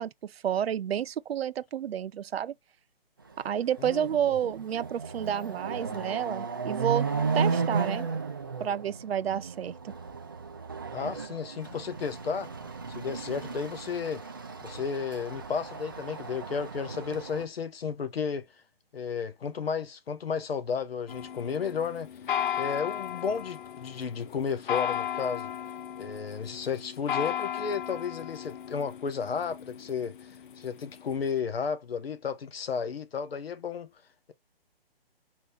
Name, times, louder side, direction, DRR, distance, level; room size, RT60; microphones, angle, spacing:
voice 1, 0.0-2.5 3.4-7.1 7.3-8.1 8.6-9.9, right 9 dB, 80° right, 0.5 m, -30 dB
Chatter / Car passing by / Motorcycle, 3.4-3.5 3.9-17.4, right 5 dB, 25° right, 0.4 m, -34 dB
voice 2, 10.9-12.5 12.9-14.2 14.6-18.5 18.9-22.1 22.6-25.5 26.0-30.3 30.6-33.9, left 6 dB, 75° left, 0.9 m, -33 dB
sound 1, 21.1-31.3, left 10 dB, 55° left, 0.5 m, -35 dB
3.7 x 2.7 x 3.2 m
hypercardioid pair, 155°, 30 cm